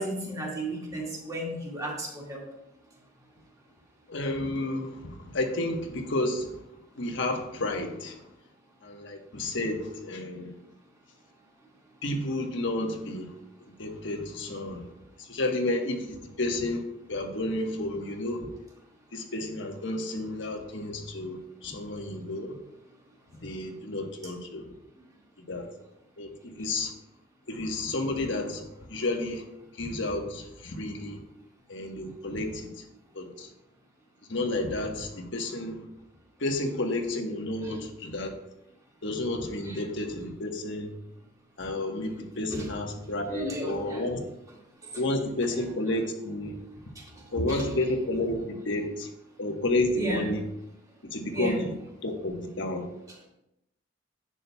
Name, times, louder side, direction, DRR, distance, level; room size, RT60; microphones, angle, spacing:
voice 1, 0.0-2.4 37.6-37.8 39.7-39.8 42.5-42.7 43.3-44.0 47.5-47.7 49.9-50.3 51.3-51.6, right 1 dB, 20° right, -3 dB, 2.0 m, -33 dB
voice 2, 4.1-6.6 6.9-8.2 8.8-10.5 12.0-13.3 13.6-14.9 15.2-18.5 19.1-22.6 23.4-24.7 25.4-25.7 26.2-26.9 27.5-29.4 29.8-31.2 31.7-32.8 33.1-33.5 34.3-35.9 36.4-38.3 39.0-40.9 41.6-44.2 45.0-46.5 47.3-49.1 49.4-50.5 51.0-51.8 52.0-52.9, left 2 dB, 65° left, 3 dB, 1.2 m, -31 dB
11.0 x 8.7 x 2.3 m, 0.85 s
head